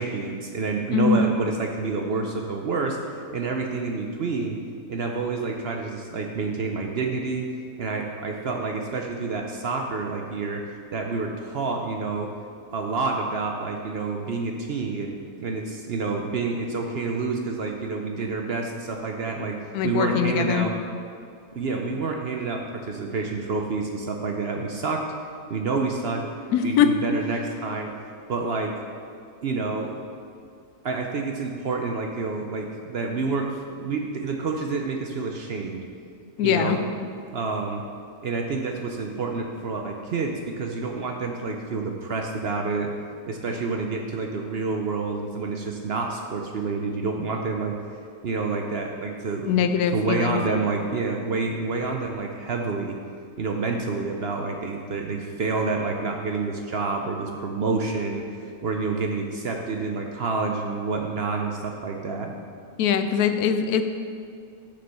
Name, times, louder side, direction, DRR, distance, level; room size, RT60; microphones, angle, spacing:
voice 1, 0.0-3.0 3.3-4.6 4.9-7.5 7.8-10.6 10.9-12.3 12.7-19.6 19.8-20.7 21.5-25.0 25.5-26.2 26.6-27.9 28.3-28.7 29.4-29.9 30.8-35.8 36.4-36.8 37.3-37.8 38.2-42.9 43.3-47.8 48.2-53.0 53.4-58.2 58.6-62.3, right 4 dB, 55° right, 2 dB, 0.7 m, -28 dB
voice 2, 19.7-20.7 26.5-26.9 36.4-36.8 49.4-50.4 62.8-63.8, left 8 dB, 90° left, 9 dB, 1.1 m, -22 dB
6.8 x 6.6 x 5.5 m, 2.3 s
omnidirectional pair, 1.6 m